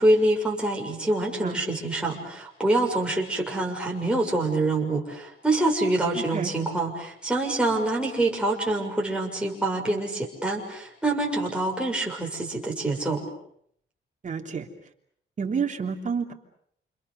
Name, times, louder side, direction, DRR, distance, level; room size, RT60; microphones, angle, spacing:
voice 1, 0.0-13.2, right 2 dB, 5° right, -2 dB, 6.6 m, -25 dB
voice 2, 6.1-6.5 14.2-14.7 15.4-16.3, right 6 dB, 40° right, 3 dB, 3.1 m, -29 dB
29.5 x 28.5 x 6.7 m, 0.67 s
wide cardioid pair, 160°, 20 cm